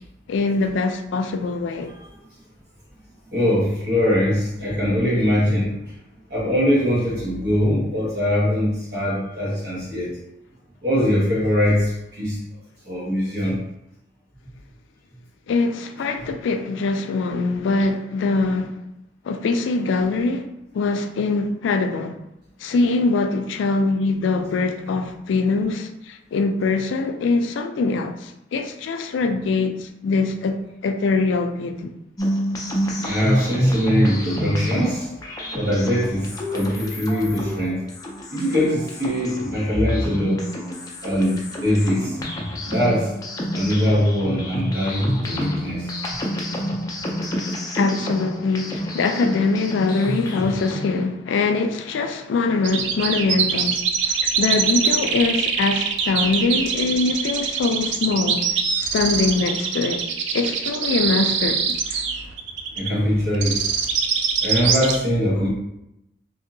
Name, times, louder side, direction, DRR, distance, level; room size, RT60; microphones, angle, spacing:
voice 1, 0.3-1.9 15.5-18.7 19.3-20.5 20.7-22.1 22.6-31.9 47.8-53.8 54.0-58.4 58.8-60.0 60.3-61.6 61.9-62.0, left 3 dB, 90° left, 0.3 m, -23 dB
voice 2, 3.3-5.7 6.3-10.2 10.8-12.4 12.9-13.6 33.0-35.1 35.5-37.8 38.3-40.4 41.0-42.2 42.6-43.1 43.5-45.9 62.8-63.5 64.4-65.5, equal, 60° right, 1.2 m, -22 dB
sound 1, 32.2-51.0, equal, 20° left, 0.4 m, -28 dB
sound 2, 52.6-65.0, right 6 dB, 80° right, 0.4 m, -23 dB
2.7 x 2.7 x 2.6 m
head